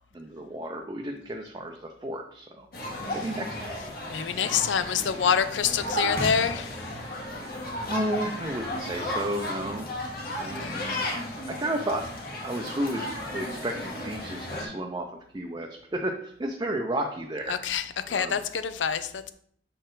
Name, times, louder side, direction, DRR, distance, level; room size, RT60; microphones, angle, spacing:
voice 1, 0.1-2.7 3.1-3.8 7.9-10.1 10.4-12.0 12.4-15.1 15.3-17.6 18.1-18.4, right 1 dB, 20° right, 1 dB, 0.5 m, -33 dB
sound 1, 2.7-14.7, left 1 dB, 55° left, 1.5 m, -34 dB
voice 2, 4.1-7.0 10.6-10.8 17.5-19.3, left 7 dB, 85° left, 12 dB, 0.5 m, -27 dB
6.5 x 4.2 x 3.8 m, 0.63 s
head